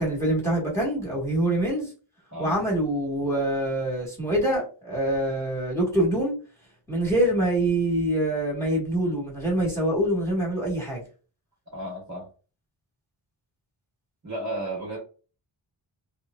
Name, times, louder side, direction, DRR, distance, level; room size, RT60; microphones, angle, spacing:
voice 1, 0.0-1.9 2.4-6.3 6.9-11.0, right 1 dB, 5° left, 1.5 m, -25 dB
voice 2, 11.7-12.3 14.2-15.0, right 1 dB, 35° right, 1.1 m, -33 dB
3.1 x 2.0 x 2.2 m
cardioid pair, 60°, 48 cm